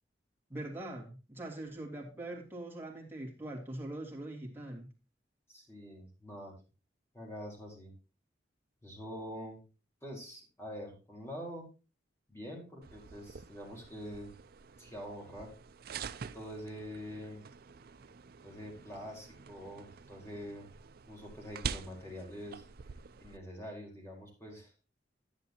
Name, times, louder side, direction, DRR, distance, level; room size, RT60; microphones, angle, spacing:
voice 1, 0.5-4.9, right 1 dB, 15° right, -2 dB, 3.0 m, -42 dB
voice 2, 5.5-6.5 7.1-7.9 8.8-9.6 10.0-11.6 12.3-14.3 14.8-15.5 16.3-17.4 18.4-20.7 21.1-22.6 23.2-24.7, equal, 15° left, -1 dB, 4.4 m, -45 dB
sound 1, 12.8-23.4, right 6 dB, 60° right, 0.5 m, -46 dB
11.0 x 10.0 x 2.9 m, 0.32 s
head